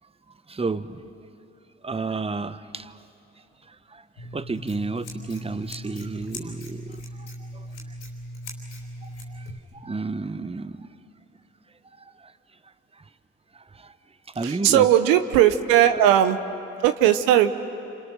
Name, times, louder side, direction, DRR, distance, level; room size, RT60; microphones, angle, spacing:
voice 1, 0.5-1.1 1.8-3.0 3.6-7.9 9.0-10.9 12.0-12.3 12.9-13.1 13.5-13.9 14.3-14.9, right 3 dB, 15° right, 13 dB, 1.1 m, -32 dB
Scissors, 4.2-9.6, equal, 85° left, 3.3 m, -38 dB
voice 2, 14.4-16.4 16.8-17.5, right 11 dB, 80° right, 9 dB, 0.9 m, -18 dB
29.0 x 27.5 x 6.5 m, 2.8 s
hypercardioid pair, 40°, 34 cm